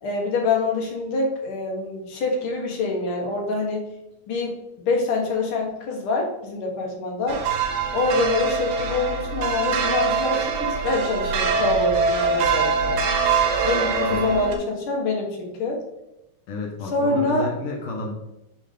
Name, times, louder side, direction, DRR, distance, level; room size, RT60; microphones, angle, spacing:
voice 1, 0.0-3.9 4.3-7.4 7.9-13.0 13.6-15.8 16.8-17.5, left 3 dB, 65° left, 0 dB, 1.4 m, -25 dB
sound 1, 7.3-14.6, right 5 dB, 75° right, 2.3 m, -23 dB
voice 2, 16.5-18.1, left 2 dB, 85° left, -1 dB, 1.3 m, -30 dB
5.5 x 4.4 x 5.0 m, 0.90 s
omnidirectional pair, 4.1 m